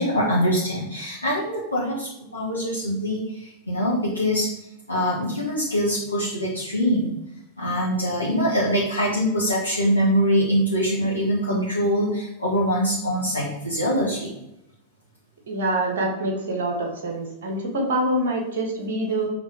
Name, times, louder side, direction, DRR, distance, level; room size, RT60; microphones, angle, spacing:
voice 1, 0.0-4.5 4.9-7.2 7.6-14.3, equal, 85° left, -7 dB, 1.5 m, -23 dB
voice 2, 15.5-19.3, right 1 dB, 60° right, 2 dB, 1.9 m, -25 dB
6.4 x 3.6 x 4.9 m, 0.85 s
figure-of-eight pair, 90°, 0 cm